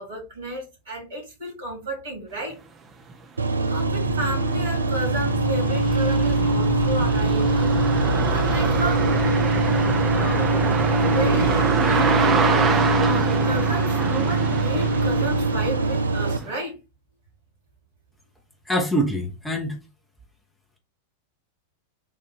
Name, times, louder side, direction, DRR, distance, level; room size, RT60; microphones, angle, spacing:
voice 1, 0.0-2.6 3.7-7.8 8.1-9.1 10.1-10.5 11.1-16.7, right 1 dB, 60° right, 2.4 m, -32 dB
sound 1, 3.1-3.2 3.6-16.5, right 5 dB, 25° right, 0.7 m, -27 dB
sound 2, 3.4-16.4, right 3 dB, 75° right, 0.4 m, -22 dB
sound 3, 3.8-11.7, left 6 dB, 50° left, 0.4 m, -32 dB
voice 2, 18.7-19.7, equal, 5° left, 0.9 m, -24 dB
4.1 x 2.6 x 4.3 m
figure-of-eight pair, 90°, 0 cm